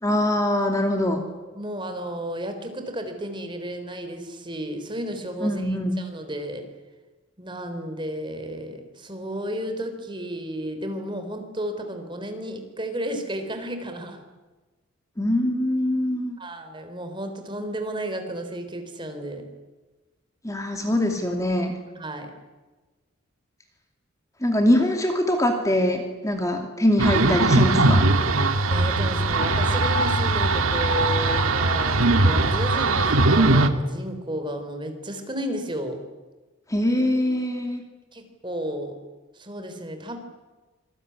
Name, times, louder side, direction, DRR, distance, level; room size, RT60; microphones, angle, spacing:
voice 1, 0.0-1.2 5.4-6.0 15.2-16.4 20.4-21.7 24.4-28.1 36.7-37.8, left 1 dB, 15° left, 4 dB, 2.6 m, -23 dB
voice 2, 1.2-6.7 7.4-14.2 16.4-19.5 22.0-22.3 28.7-36.0 38.1-39.0 39.3-40.2, equal, 20° right, 6 dB, 3.7 m, -33 dB
sound 1, 27.0-33.7, right 2 dB, 85° right, 2.0 m, -20 dB
26.5 x 21.0 x 9.8 m, 1.2 s
head